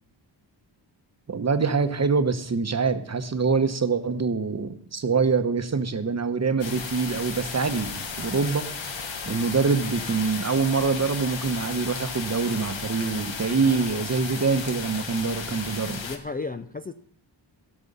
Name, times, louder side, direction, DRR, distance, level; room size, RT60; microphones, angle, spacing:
voice 1, 1.3-8.7 9.3-16.0, right 4 dB, 35° right, 10 dB, 0.9 m, -25 dB
sound 1, 6.6-16.2, left 5 dB, 80° left, 1.5 m, -34 dB
voice 2, 13.5-13.9 16.0-16.9, left 3 dB, 20° left, 9 dB, 0.4 m, -34 dB
16.0 x 6.2 x 5.4 m, 0.66 s
wide cardioid pair, 110°, 45 cm